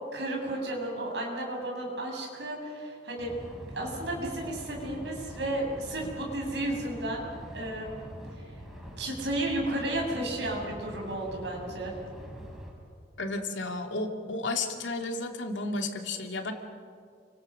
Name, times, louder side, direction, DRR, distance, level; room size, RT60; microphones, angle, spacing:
voice 1, 0.1-3.3 3.7-8.0 8.3-8.5 9.0-11.9, right 1 dB, 65° right, 0 dB, 7.7 m, -33 dB
sound 1, 3.2-12.7, equal, ahead, 6.1 m, -44 dB
voice 2, 13.2-16.5, left 2 dB, 85° left, 3 dB, 2.7 m, -32 dB
30.0 x 25.5 x 6.6 m, 2.2 s
head